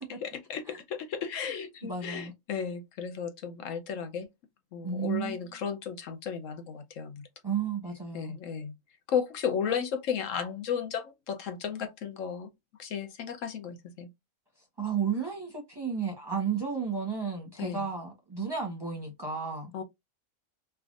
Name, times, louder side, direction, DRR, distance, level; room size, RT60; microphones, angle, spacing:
voice 1, 0.2-4.3 4.7-7.3 8.1-8.7 9.1-12.5 12.8-14.1 17.6-17.9 19.7-19.8, left 7 dB, 70° left, 0.9 m, -34 dB
voice 2, 1.8-2.3 4.8-5.4 7.4-8.3 14.8-19.7, right 6 dB, 20° right, 0.8 m, -33 dB
3.4 x 2.3 x 2.4 m
omnidirectional pair, 1.5 m